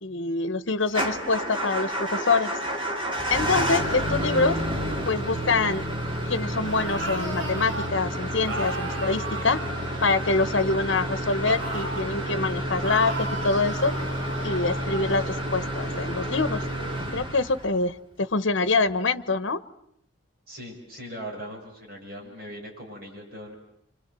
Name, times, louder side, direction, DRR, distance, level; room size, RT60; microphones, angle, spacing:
voice 1, 0.0-2.6 3.3-4.6 5.1-5.8 6.3-9.6 10.0-13.9 14.4-16.6 17.1-19.6, left 3 dB, 65° left, 14 dB, 1.0 m, -25 dB
Motor vehicle (road) / Engine starting / Idling, 0.9-17.8, equal, 25° right, 3.0 m, -30 dB
sound 1, 6.5-7.9 8.4-10.7 11.4-12.1 12.8-15.3, right 2 dB, 65° right, 2.3 m, -35 dB
voice 2, 20.5-23.5, equal, 45° right, 0 dB, 7.2 m, -40 dB
28.0 x 25.5 x 7.6 m, 0.73 s
head